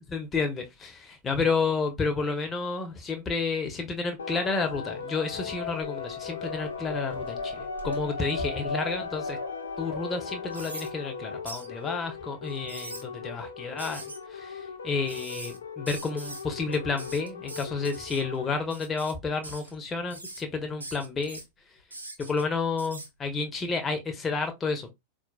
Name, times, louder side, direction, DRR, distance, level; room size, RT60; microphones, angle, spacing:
voice 1, 0.1-9.4 9.8-14.0 14.3-21.4 22.2-24.9, left 4 dB, 20° left, 0.8 m, -31 dB
sound 1, 4.2-18.6, left 4 dB, 70° left, 0.5 m, -37 dB
sound 2, 5.6-6.1 6.6-9.2 9.7-9.8 10.5-10.9 11.5-11.7 12.5-13.0 13.8-14.2 15.1-15.6 15.9-16.4 16.7-18.2 18.7-19.1 19.4-19.8 20.1-20.4 20.8-21.4 21.9-22.4 22.8-23.1, right 2 dB, 80° right, 0.8 m, -42 dB
4.3 x 2.5 x 2.3 m
figure-of-eight pair, 90°, 0 cm